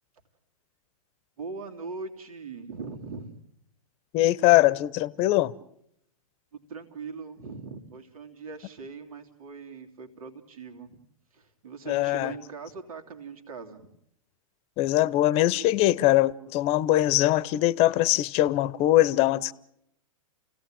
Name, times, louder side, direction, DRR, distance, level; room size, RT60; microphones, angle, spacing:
voice 1, 1.4-3.4 6.5-11.0 11.3-13.9, right 4 dB, 70° right, 3.1 m, -41 dB
voice 2, 4.1-5.6 11.9-12.3 14.8-19.5, left 15 dB, 35° left, 0.9 m, -22 dB
29.5 x 17.5 x 9.0 m
hypercardioid pair, 130°, 19 cm